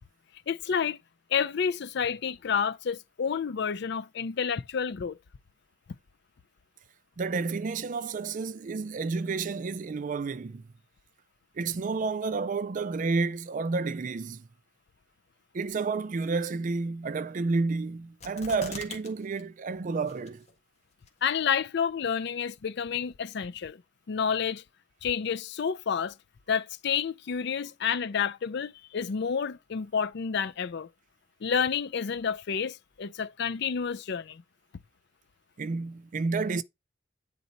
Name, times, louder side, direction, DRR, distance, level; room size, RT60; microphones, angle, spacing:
voice 1, 0.5-1.0 1.3-5.2 21.2-23.8 24.1-24.6 25.0-26.1 26.5-30.9 31.4-34.4, left 7 dB, 60° left, 0.4 m, -29 dB
voice 2, 7.2-10.6 11.6-14.5 15.5-20.5 35.6-36.6, right 4 dB, 40° right, 0.4 m, -30 dB
sound 1, 18.2-19.1 19.4-19.5 20.1-20.5 21.1-21.2, left 4 dB, 35° left, 1.5 m, -41 dB
9.2 x 4.0 x 4.1 m
head